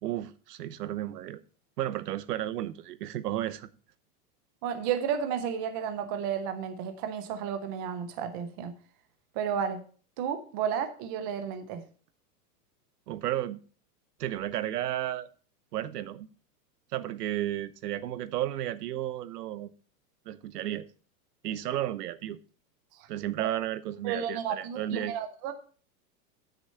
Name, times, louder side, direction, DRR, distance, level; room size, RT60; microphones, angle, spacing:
voice 1, 0.0-1.4 1.8-3.7 13.1-13.6 14.2-15.3 15.7-16.3 16.9-19.7 20.3-20.9 21.4-22.4 23.1-25.1, right 13 dB, 80° right, 0.9 m, -33 dB
voice 2, 4.6-8.7 9.4-9.8 10.2-11.8 23.4-23.5 24.0-25.5, right 8 dB, 15° right, 0.3 m, -32 dB
8.4 x 6.3 x 5.5 m
supercardioid pair, 145°, 46 cm